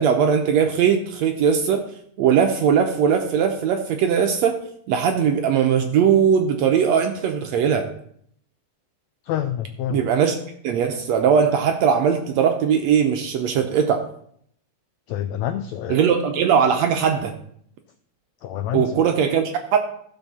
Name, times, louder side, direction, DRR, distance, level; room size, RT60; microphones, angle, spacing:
voice 1, 0.0-1.8 2.2-4.6 4.9-7.9 9.9-10.4 10.6-14.1 15.9-17.3 18.7-19.8, right 7 dB, 75° right, 5 dB, 1.7 m, -19 dB
voice 2, 9.2-10.0 15.1-16.0 18.4-19.1, left 11 dB, 85° left, 9 dB, 1.5 m, -27 dB
14.5 x 6.9 x 4.2 m, 0.67 s
omnidirectional pair, 3.8 m